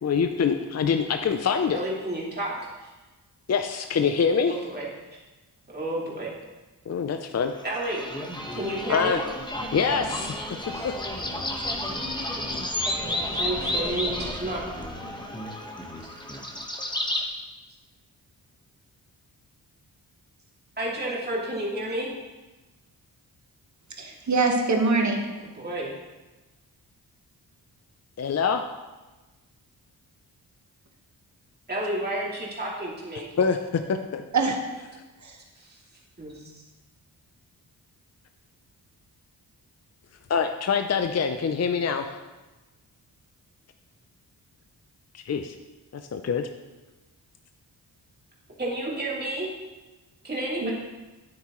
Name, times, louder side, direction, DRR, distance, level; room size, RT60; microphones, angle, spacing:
voice 1, 0.0-1.9 3.5-4.6 6.9-7.5 8.9-9.2 9.7-10.4 28.2-28.6 33.4-34.2 40.3-42.1 45.1-45.6 46.1-46.5, left 6 dB, 40° left, 7 dB, 0.6 m, -25 dB
voice 2, 1.7-2.9 4.5-4.8 5.1-5.2 5.7-6.3 7.6-8.0 8.5-9.2 10.7-10.9 12.9-14.6 16.0-16.1 20.8-22.1 25.5-25.9 31.7-33.2 35.6-35.8 36.2-36.6 48.6-49.5 50.2-50.7, right 1 dB, 25° right, -6 dB, 2.7 m, -31 dB
sound 1, 7.6-17.2, left 1 dB, 10° left, 1.4 m, -32 dB
voice 3, 24.0-25.3 34.3-34.6 35.2-35.4 50.6-50.7, right 3 dB, 45° right, 2 dB, 1.5 m, -23 dB
9.2 x 8.6 x 3.1 m, 1.2 s
cardioid pair, 55°, 41 cm